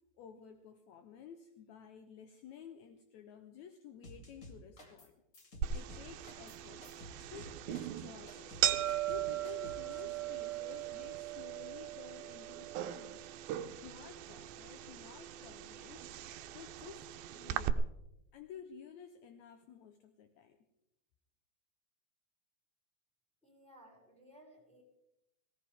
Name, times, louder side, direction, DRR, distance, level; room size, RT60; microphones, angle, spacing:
voice 1, 0.2-5.2 5.7-6.8 7.3-8.5 9.1-13.3 13.8-16.1 16.5-17.9 18.3-20.6, left 7 dB, 75° left, 7 dB, 1.7 m, -53 dB
sound 1, 4.0-5.1 5.3-10.0, left 1 dB, 30° left, 1.7 m, -53 dB
sound 2, 5.6-17.7, right 12 dB, 85° right, 2.5 m, -39 dB
voice 2, 23.4-24.8, right 1 dB, ahead, -1 dB, 5.8 m, -59 dB
18.5 x 18.0 x 3.5 m, 0.88 s
omnidirectional pair, 4.1 m